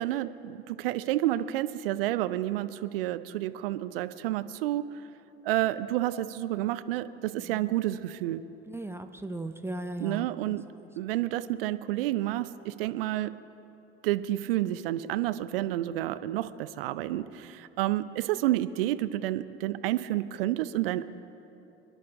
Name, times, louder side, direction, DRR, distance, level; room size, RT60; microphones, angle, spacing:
voice 1, 0.0-4.9 5.4-8.4 10.0-10.6 11.0-13.3 14.0-21.0, right 14 dB, 60° right, 13 dB, 0.7 m, -30 dB
voice 2, 7.4-7.8 8.7-10.6, right 2 dB, 10° right, 7 dB, 0.6 m, -38 dB
26.5 x 11.0 x 3.7 m, 2.8 s
figure-of-eight pair, 70°, 33 cm